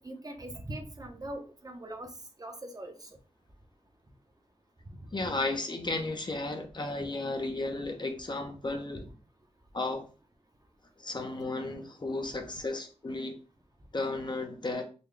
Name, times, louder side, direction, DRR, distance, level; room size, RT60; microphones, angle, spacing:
voice 1, 0.0-2.1 2.4-3.1 5.0-5.1, right 1 dB, 30° right, 4 dB, 0.8 m, -41 dB
voice 2, 5.1-9.1 9.7-10.1 11.0-13.4 13.9-14.8, left 2 dB, 40° left, 4 dB, 0.7 m, -34 dB
3.9 x 2.2 x 3.2 m, 0.35 s
cardioid pair, 60°, 12 cm